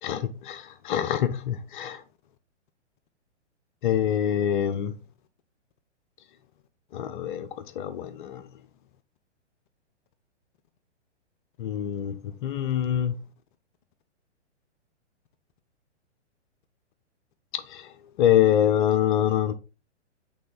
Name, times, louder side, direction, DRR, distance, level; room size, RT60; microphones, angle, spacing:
voice 1, 0.0-2.0 3.8-4.9 6.9-7.5 7.8-8.4 11.6-13.1 17.5-17.9 18.2-19.5, left 10 dB, 45° left, 0.8 m, -25 dB
8.6 x 3.6 x 3.9 m
hypercardioid pair, 125°, 35 cm